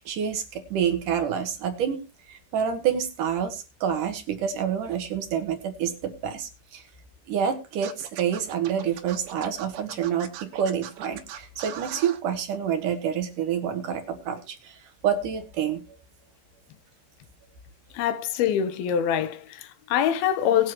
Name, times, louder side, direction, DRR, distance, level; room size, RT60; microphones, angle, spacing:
voice 1, 0.0-2.0 2.3-6.8 7.3-14.8 15.0-16.0, right 8 dB, 60° right, 2.3 m, -28 dB
Scratching (performance technique), 7.8-12.2, right 11 dB, 90° right, 3.9 m, -40 dB
voice 2, 17.9-20.7, left 9 dB, 70° left, 2.5 m, -24 dB
21.5 x 7.2 x 3.0 m
omnidirectional pair, 5.3 m